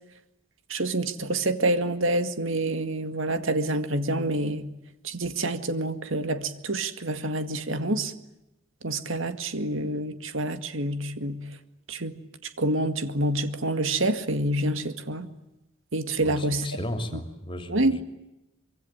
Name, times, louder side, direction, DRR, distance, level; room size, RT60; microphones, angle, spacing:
voice 1, 0.7-4.7 5.0-8.1 8.8-11.4 11.9-12.1 12.6-15.3 15.9-16.7 17.1-17.2 17.7-18.0, right 1 dB, 70° right, 10 dB, 2.1 m, -27 dB
voice 2, 16.2-18.0, left 1 dB, 25° left, 7 dB, 2.9 m, -35 dB
25.0 x 24.0 x 9.0 m, 0.91 s
head